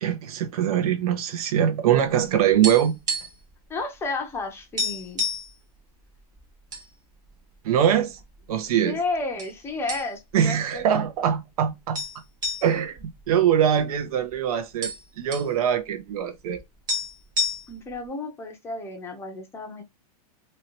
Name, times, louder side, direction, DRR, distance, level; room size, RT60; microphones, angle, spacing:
voice 1, 0.0-3.0 7.6-8.2 8.5-9.0 10.3-12.0 12.6-16.6, right 9 dB, 70° right, 0.7 m, -23 dB
sound 1, 2.6-3.5 3.8-4.0 4.3-4.4 4.8-5.5 6.2-6.9 7.2-7.4 8.1-8.7 9.4-9.6 9.9-10.4 10.8-10.9 11.9-14.0 14.3-14.4 14.6-15.5 16.6-16.7 16.9-17.9, left 2 dB, 20° right, 0.9 m, -30 dB
voice 2, 3.7-5.2 8.7-10.8 17.7-19.8, left 3 dB, 15° left, 0.6 m, -32 dB
2.8 x 2.8 x 2.8 m
supercardioid pair, 150°, 20 cm